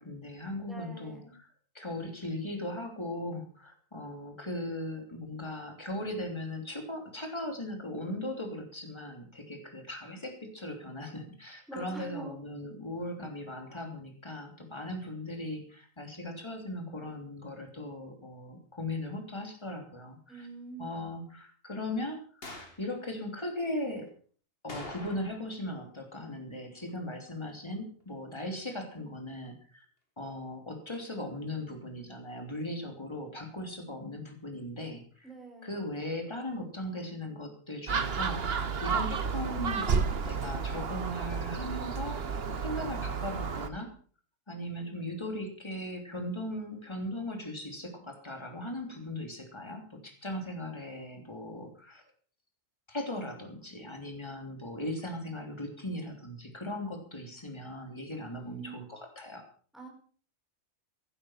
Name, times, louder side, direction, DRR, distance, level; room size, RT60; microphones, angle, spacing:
voice 1, 0.0-1.5 1.7-20.5 20.8-22.5 22.8-24.1 24.6-29.8 30.2-35.3 35.6-39.9 40.2-42.2 42.6-43.9 44.5-52.0 52.9-59.5, left 1 dB, 20° left, 4 dB, 3.3 m, -38 dB
voice 2, 0.6-1.3 11.7-12.4 20.3-21.1 35.2-35.8 58.3-58.7 59.7-59.9, right 3 dB, ahead, 0 dB, 5.1 m, -45 dB
sound 1, 22.4-22.9 24.7-25.6 25.8-25.9 30.9-31.1, left 2 dB, 45° left, 2.6 m, -44 dB
Gull seagull, 37.9-43.7, right 5 dB, 50° right, 1.3 m, -31 dB
16.5 x 12.0 x 5.8 m, 0.43 s
omnidirectional pair, 1.3 m